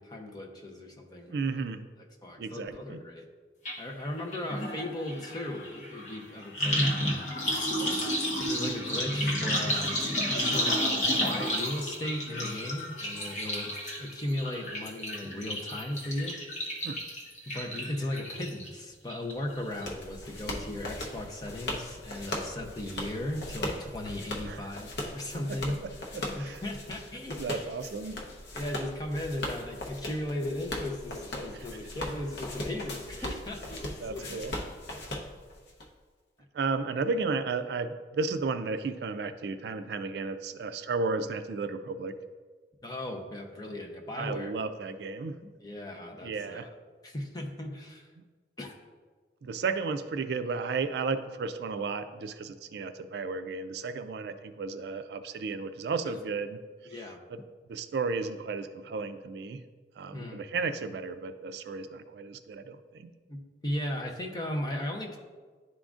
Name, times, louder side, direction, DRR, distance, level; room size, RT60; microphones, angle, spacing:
voice 1, 0.0-1.6 2.2-3.3 3.8-8.1 8.5-16.4 17.5-25.8 26.3-27.4 28.5-34.4 42.8-44.5 45.6-46.7 47.0-48.1 48.6-48.8 56.0-56.1 56.9-57.2 60.1-60.4 63.3-65.2, left 1 dB, 20° left, 1 dB, 0.6 m, -37 dB
voice 2, 1.3-1.8 2.4-3.0 16.8-17.0 24.5-24.7 26.1-26.6 27.4-28.2 31.5-31.7 34.0-34.5 36.5-42.1 44.1-45.4 46.2-46.7 49.4-57.4 57.7-59.6 60.0-63.1, right 4 dB, 65° right, 10 dB, 0.3 m, -33 dB
sound 1, 3.7-3.8 4.1-18.7 19.1-19.6 19.8-19.9, equal, 45° left, 1.1 m, -31 dB
sound 2, 19.3-35.9, left 1 dB, 70° left, 0.8 m, -39 dB
11.0 x 3.7 x 2.4 m, 1.5 s
head